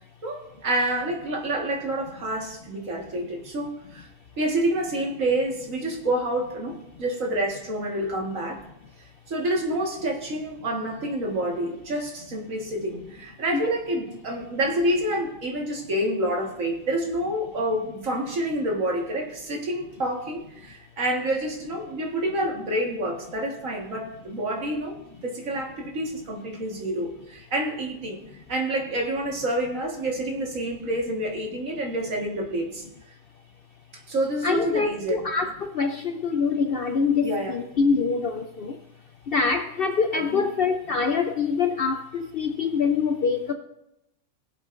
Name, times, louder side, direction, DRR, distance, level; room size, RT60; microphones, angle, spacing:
voice 1, 0.2-4.1 4.4-8.6 9.3-24.9 25.2-28.2 28.5-32.9 34.1-35.3 37.2-37.5 40.3-40.4, right 1 dB, 65° right, 1 dB, 2.0 m, -28 dB
voice 2, 34.4-38.7 39.3-43.5, left 5 dB, 60° left, 6 dB, 0.6 m, -25 dB
20.5 x 7.8 x 2.5 m, 0.84 s
omnidirectional pair, 1.5 m